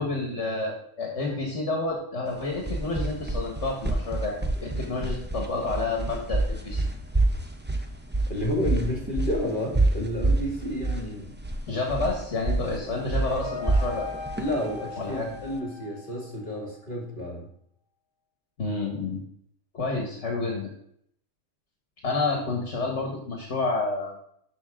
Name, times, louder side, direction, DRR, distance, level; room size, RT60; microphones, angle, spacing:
voice 1, 0.0-6.9 11.7-14.1 15.0-15.3 18.6-19.2 19.7-20.7 22.0-24.2, left 3 dB, 70° left, 0 dB, 1.9 m, -29 dB
sound 1, 2.3-15.6, right 2 dB, 10° right, 0.6 m, -28 dB
voice 2, 8.3-11.3 14.4-17.4, left 1 dB, 45° left, -1 dB, 2.5 m, -30 dB
sound 2, 12.6-16.5, left 4 dB, 20° left, 3.2 m, -40 dB
12.5 x 5.7 x 3.7 m, 0.69 s
omnidirectional pair, 1.3 m